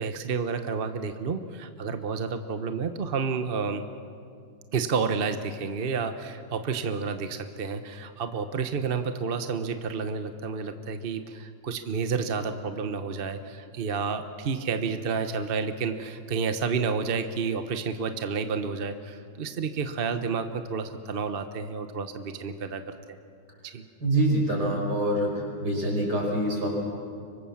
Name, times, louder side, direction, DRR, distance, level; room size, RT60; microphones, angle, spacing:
voice 1, 0.0-3.8 4.7-23.0 23.6-23.8, right 5 dB, 40° right, 8 dB, 0.9 m, -30 dB
voice 2, 24.0-25.3 25.6-26.7, right 1 dB, 60° right, 0 dB, 6.1 m, -25 dB
25.0 x 24.0 x 7.2 m, 2.3 s
omnidirectional pair, 2.0 m